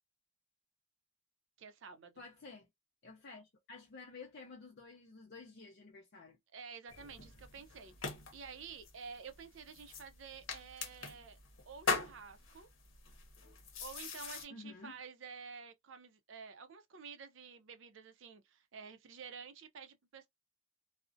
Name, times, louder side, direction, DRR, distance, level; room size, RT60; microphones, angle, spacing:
voice 1, 1.6-2.2 6.5-11.4 11.7-12.7 13.8-20.3, right 6 dB, 65° right, 0.5 m, -51 dB
voice 2, 2.2-2.7 3.0-6.4 14.5-15.0, left 4 dB, 55° left, 0.5 m, -52 dB
sound 1, 6.9-14.4, left 4 dB, 90° left, 0.8 m, -42 dB
2.4 x 2.0 x 2.4 m
head